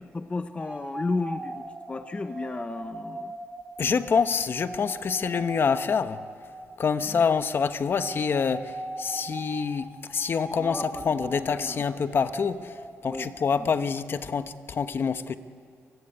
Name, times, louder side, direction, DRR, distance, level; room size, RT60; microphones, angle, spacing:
voice 1, 0.0-3.3 7.0-7.3 10.6-11.8 13.1-13.3 13.6-13.7, left 3 dB, 25° left, 0.7 m, -34 dB
sound 1, 0.6-7.5 7.9-14.2, right 2 dB, 20° right, 4.7 m, -40 dB
voice 2, 3.8-6.2 6.8-8.7 9.0-12.7 13.0-15.4, left 6 dB, 45° left, 1.0 m, -26 dB
29.0 x 19.5 x 9.8 m
cardioid pair, 125°, 5 cm